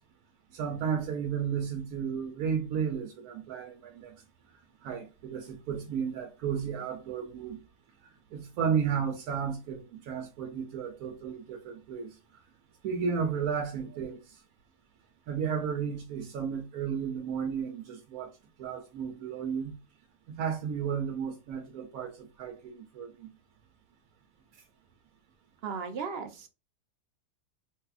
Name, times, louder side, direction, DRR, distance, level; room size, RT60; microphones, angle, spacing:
voice 1, 0.5-4.1 4.8-7.6 8.3-12.1 12.8-14.2 15.3-18.3 18.6-19.8 20.3-23.3, right 7 dB, 75° right, 1.0 m, -33 dB
voice 2, 25.6-26.5, right 5 dB, 55° right, 0.7 m, -36 dB
3.4 x 2.8 x 2.3 m
omnidirectional pair, 1.7 m